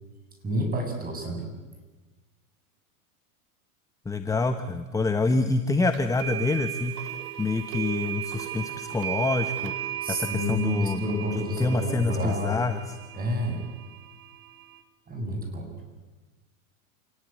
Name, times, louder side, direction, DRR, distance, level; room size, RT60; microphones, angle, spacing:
voice 1, 0.4-1.5 10.0-12.6 13.1-13.7 15.1-15.7, equal, 20° right, 4 dB, 7.4 m, -29 dB
voice 2, 4.0-7.1 7.4-11.0 11.3-12.8, left 3 dB, 10° left, 8 dB, 1.1 m, -27 dB
sound 1, 5.9-14.8, right 12 dB, 70° right, 2.9 m, -36 dB
28.0 x 18.5 x 9.8 m, 1.2 s
supercardioid pair, 125°, 43 cm